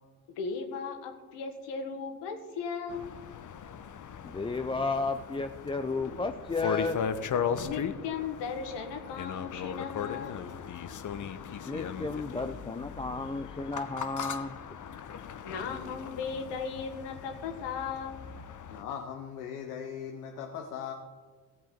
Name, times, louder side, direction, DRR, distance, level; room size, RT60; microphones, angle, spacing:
voice 1, 0.3-3.1 7.6-10.4 15.4-18.2, left 5 dB, 65° left, 4 dB, 1.7 m, -37 dB
sound 1, 2.9-18.8, left 7 dB, 40° left, 0.9 m, -38 dB
voice 2, 4.2-7.0 11.7-14.6, left 3 dB, 10° left, 6 dB, 0.5 m, -33 dB
voice 3, 18.7-20.9, left 8 dB, 85° left, 3 dB, 0.9 m, -39 dB
16.5 x 7.6 x 4.4 m, 1.4 s
hypercardioid pair, 50°, 45 cm